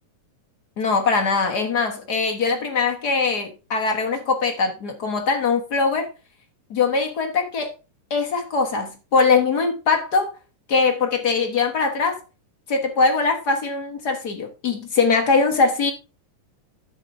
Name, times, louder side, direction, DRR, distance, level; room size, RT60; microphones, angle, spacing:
voice 1, 0.8-6.1 6.7-7.7 8.1-10.3 10.7-12.2 12.7-15.9, left 4 dB, 50° left, 1.2 m, -21 dB
11.5 x 8.2 x 2.6 m
omnidirectional pair, 3.5 m